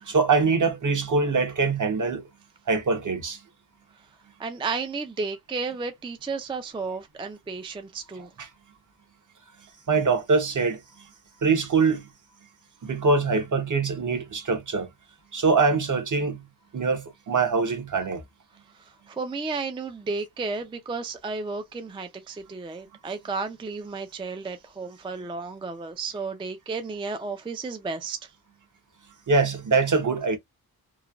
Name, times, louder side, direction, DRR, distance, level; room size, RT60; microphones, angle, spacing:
voice 1, 0.1-2.2 2.7-3.4 8.4-8.5 9.9-10.8 11.4-12.1 12.8-14.9 15.3-16.4 16.7-18.2 29.3-30.4, right 4 dB, 55° right, 0.8 m, -23 dB
voice 2, 4.4-8.3 19.1-28.3, right 4 dB, 15° right, 0.3 m, -33 dB
3.1 x 2.1 x 2.3 m
wide cardioid pair, 130°, 37 cm